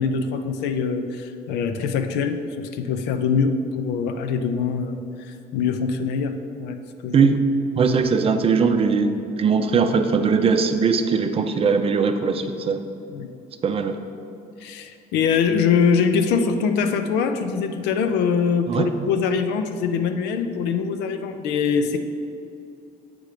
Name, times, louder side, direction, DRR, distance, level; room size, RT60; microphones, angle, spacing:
voice 1, 0.0-7.3 13.1-13.3 14.6-22.0, left 6 dB, 90° left, 7 dB, 0.5 m, -23 dB
voice 2, 7.7-12.8 13.6-13.9 18.7-18.9, right 5 dB, 35° right, 8 dB, 0.5 m, -20 dB
8.9 x 3.5 x 4.9 m, 2.6 s
cardioid pair, 110°, 17 cm